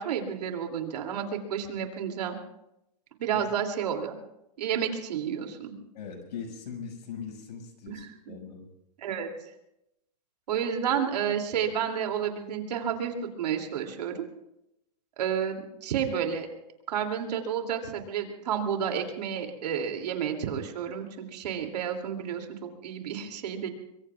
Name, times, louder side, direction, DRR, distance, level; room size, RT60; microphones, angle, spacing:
voice 1, 0.0-2.4 3.2-4.2 4.6-5.7 7.9-8.3 9.0-9.3 10.5-14.2 15.2-16.5 16.9-23.7, right 8 dB, 75° right, 3 dB, 2.8 m, -31 dB
voice 2, 5.9-8.6, left 6 dB, 80° left, 4 dB, 6.1 m, -40 dB
23.5 x 23.5 x 2.4 m, 0.84 s
supercardioid pair, 180°, 21 cm